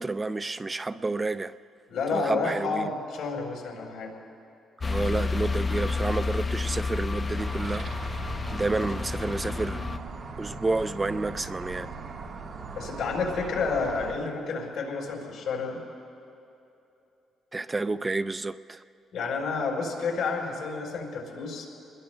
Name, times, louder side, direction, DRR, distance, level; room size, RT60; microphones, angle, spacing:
voice 1, 0.0-1.5 2.1-2.9 4.8-7.9 8.5-9.8 10.4-11.9 17.5-18.8, right 3 dB, 20° right, 0.3 m, -30 dB
voice 2, 1.9-4.1 12.8-15.8 19.1-21.6, left 4 dB, 65° left, 3.9 m, -30 dB
sound 1, 4.8-10.0, left 4 dB, 30° left, 0.5 m, -30 dB
sound 2, 7.4-14.1, right 4 dB, 50° right, 1.4 m, -39 dB
28.5 x 21.0 x 2.2 m
cardioid pair, 105°, 0 cm